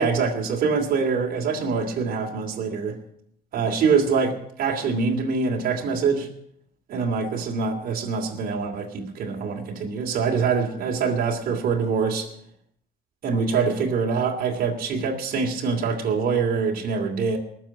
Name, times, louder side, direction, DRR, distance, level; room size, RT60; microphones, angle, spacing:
voice 1, 0.0-3.0 3.5-6.3 6.9-12.3 13.2-17.4, right 5 dB, 60° right, 0 dB, 2.9 m, -24 dB
19.5 x 7.2 x 8.9 m, 0.72 s
cardioid pair, 110°, 17 cm